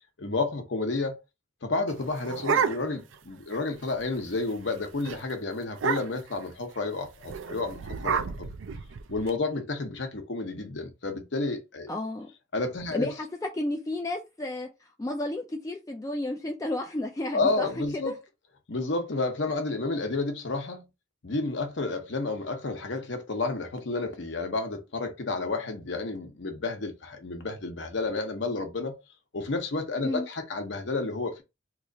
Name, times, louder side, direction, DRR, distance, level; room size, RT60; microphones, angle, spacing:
voice 1, 0.2-1.2 1.6-8.5 9.1-11.9 12.5-13.1 17.3-18.2 18.7-20.9 21.2-28.9 29.3-31.4, left 3 dB, 65° left, 0.8 m, -31 dB
sound 1, 1.9-3.2 3.5-3.6 3.9-4.2 4.5-4.7 5.1-5.2 5.7-6.4 7.2-9.3, right 6 dB, 75° right, 0.4 m, -30 dB
voice 2, 11.9-12.3 12.9-17.7 17.9-18.1 30.0-30.3, left 1 dB, 15° left, 0.3 m, -32 dB
3.0 x 2.4 x 3.8 m
head